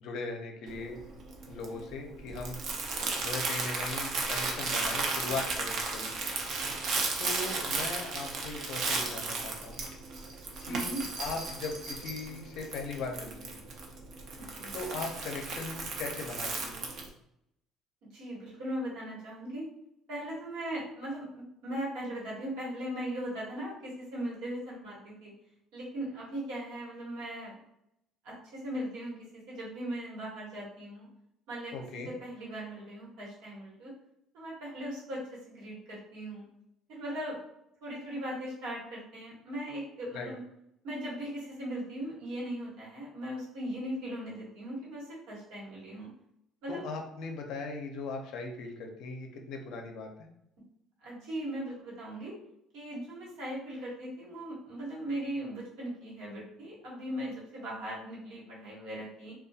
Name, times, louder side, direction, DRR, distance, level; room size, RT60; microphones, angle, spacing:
voice 1, 0.0-1.0 1.5-2.6 3.2-6.1 7.2-9.8 10.7-10.9 11.2-13.6 14.7-16.9 31.7-32.1 40.1-40.3 46.7-50.1, left 3 dB, 70° left, 3 dB, 0.5 m, -39 dB
Crumpling crinkling, 0.7-17.1, right 3 dB, 60° right, 0.5 m, -35 dB
voice 2, 10.6-11.0 14.5-14.7 18.1-19.7 20.1-25.3 25.7-27.6 28.2-31.1 31.5-33.9 34.3-36.5 36.9-37.4 37.8-40.4 40.8-46.1 46.6-46.8 48.3-48.4 51.0-52.3 52.7-59.3, right 1 dB, 80° right, -5 dB, 1.1 m, -39 dB
2.3 x 2.2 x 2.7 m, 0.78 s
supercardioid pair, 100°, 0 cm